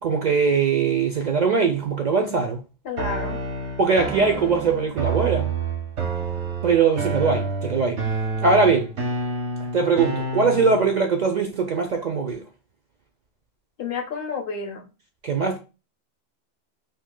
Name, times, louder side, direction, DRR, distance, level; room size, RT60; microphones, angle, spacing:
voice 1, 0.0-2.6 3.8-5.5 6.6-8.0 8.4-8.9 9.7-12.4 15.2-15.6, right 5 dB, 55° right, 0.5 m, -21 dB
voice 2, 2.9-3.4 13.8-14.9, left 5 dB, 60° left, 0.7 m, -30 dB
sound 1, 3.0-11.0, right 3 dB, 80° right, 1.2 m, -28 dB
2.9 x 2.7 x 3.6 m
omnidirectional pair, 1.2 m